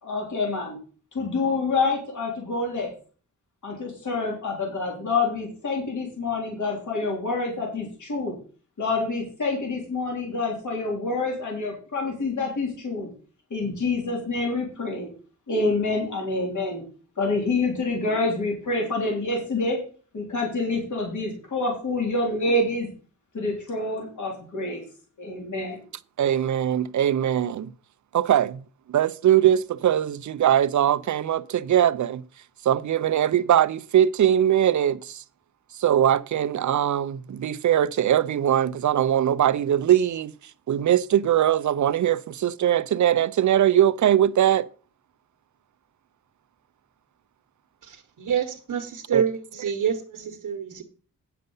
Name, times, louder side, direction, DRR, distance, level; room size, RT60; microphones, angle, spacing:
voice 1, 0.0-0.8 1.1-2.9 3.6-8.3 8.8-13.1 13.5-15.1 15.5-16.8 17.2-19.8 20.1-22.9 23.3-24.8 25.2-25.8, left 3 dB, 65° left, 3.4 m, -27 dB
voice 2, 26.2-27.7 28.1-28.6 28.9-32.2 32.6-35.2 35.8-40.3 40.7-44.7 49.1-49.2, right 10 dB, 65° right, 0.5 m, -21 dB
voice 3, 47.8-50.8, right 8 dB, 80° right, 1.2 m, -27 dB
9.3 x 6.7 x 5.5 m
wide cardioid pair, 150°, 32 cm